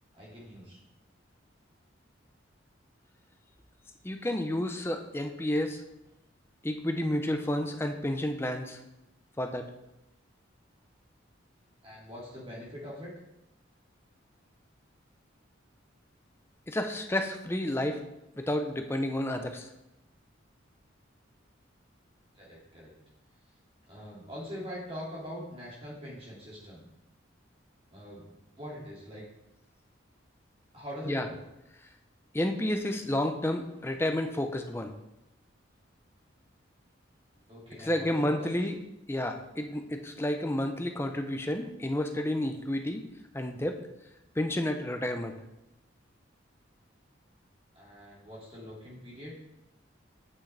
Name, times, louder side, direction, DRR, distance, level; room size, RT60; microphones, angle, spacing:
voice 1, 0.2-0.8 11.8-13.1 22.3-22.9 23.9-26.8 27.9-28.3 28.6-29.2 30.7-31.4 37.5-38.5 47.7-49.3, equal, 30° right, -5 dB, 2.4 m, -43 dB
voice 2, 4.0-5.8 6.6-8.8 9.4-9.7 16.7-18.0 18.4-19.7 31.1-31.3 32.3-34.9 37.8-38.8 39.1-43.0 43.3-43.8 44.4-45.3, left 1 dB, 10° left, 5 dB, 0.5 m, -30 dB
8.7 x 6.2 x 3.3 m, 0.90 s
head